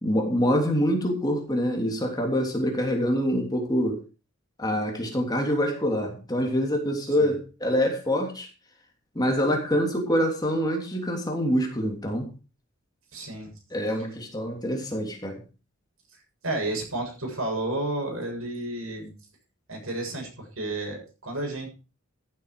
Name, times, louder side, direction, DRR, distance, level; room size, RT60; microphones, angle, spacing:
voice 1, 0.0-4.0 4.6-8.5 9.1-12.3 13.7-15.4, equal, 20° left, 2 dB, 3.1 m, -25 dB
voice 2, 7.0-7.4 13.1-13.5 16.4-19.1 19.7-21.7, right 2 dB, 80° right, 1 dB, 7.4 m, -31 dB
15.0 x 8.9 x 4.9 m, 0.33 s
head